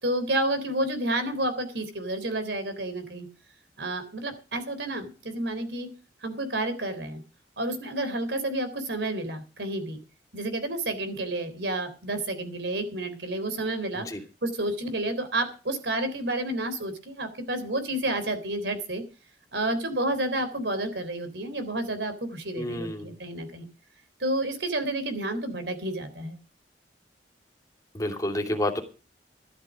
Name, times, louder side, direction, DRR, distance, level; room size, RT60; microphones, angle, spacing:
voice 1, 0.0-3.3 3.8-5.9 6.2-7.2 7.6-10.0 10.3-14.1 14.4-19.0 19.5-23.7 24.2-26.4, right 1 dB, 75° right, 9 dB, 3.6 m, -30 dB
voice 2, 22.6-23.1 27.9-28.8, left 1 dB, 20° left, 3 dB, 2.7 m, -29 dB
13.5 x 12.0 x 5.0 m, 0.34 s
head